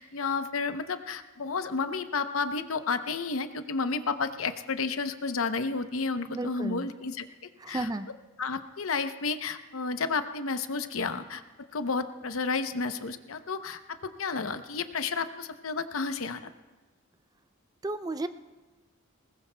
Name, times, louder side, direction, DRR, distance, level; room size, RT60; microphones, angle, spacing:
voice 1, 0.0-7.3 7.7-7.9 8.4-11.4 11.7-16.5, left 4 dB, 80° left, 10 dB, 0.7 m, -31 dB
voice 2, 6.3-6.9 7.6-8.1 17.8-18.3, right 2 dB, 20° right, 11 dB, 0.4 m, -33 dB
21.0 x 19.5 x 2.2 m, 1.2 s
head